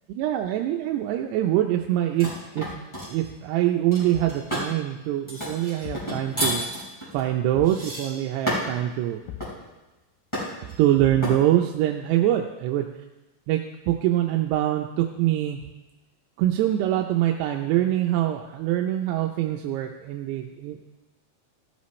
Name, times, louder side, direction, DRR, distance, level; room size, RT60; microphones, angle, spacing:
voice 1, 0.1-2.3 2.5-6.6 7.1-9.2 10.8-12.8 13.5-15.6 16.4-20.8, right 13 dB, 85° right, 3 dB, 2.8 m, -24 dB
sound 1, 2.2-3.2 3.9-4.7 5.3-8.8 9.4-9.6 10.3-10.8 11.2-11.4, equal, 5° left, 4.8 m, -31 dB
Thump thud, 4.1-4.6 5.8-6.2 7.5-7.9 9.3-9.6 11.0-11.5, left 13 dB, 80° left, 2.3 m, -40 dB
16.0 x 12.5 x 3.2 m, 1.1 s
omnidirectional pair, 4.8 m